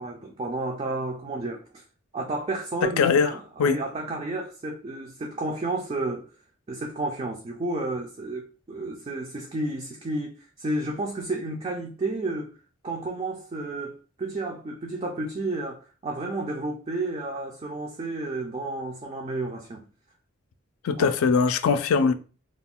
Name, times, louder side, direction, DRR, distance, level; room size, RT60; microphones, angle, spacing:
voice 1, 0.0-1.8 2.1-6.3 6.7-12.6 12.8-19.8 21.0-21.1, right 2 dB, 30° right, 0.3 m, -31 dB
voice 2, 3.0-3.3 3.6-3.8 20.8-22.1, left 5 dB, 80° left, 0.4 m, -21 dB
2.3 x 2.2 x 3.5 m
head